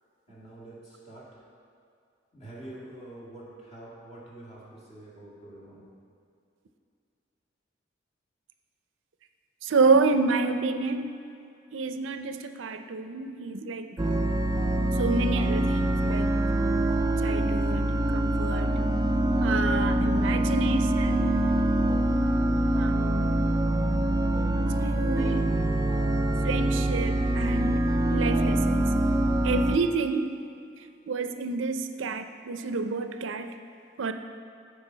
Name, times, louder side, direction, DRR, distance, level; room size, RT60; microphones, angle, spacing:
voice 1, 0.3-1.3 2.3-5.9, right 1 dB, 35° left, -6 dB, 2.1 m, -46 dB
voice 2, 9.6-11.1 11.7-14.0 15.0-16.3 17.2-18.8 19.4-21.6 22.8-23.4 24.8-25.5 26.4-27.8 28.1-28.9 29.4-30.3 31.1-33.5 34.0-34.1, right 4 dB, 90° right, 8 dB, 0.5 m, -29 dB
sound 1, 14.0-29.8, right 1 dB, 20° right, 0.4 m, -25 dB
13.5 x 5.1 x 3.9 m, 2.5 s
head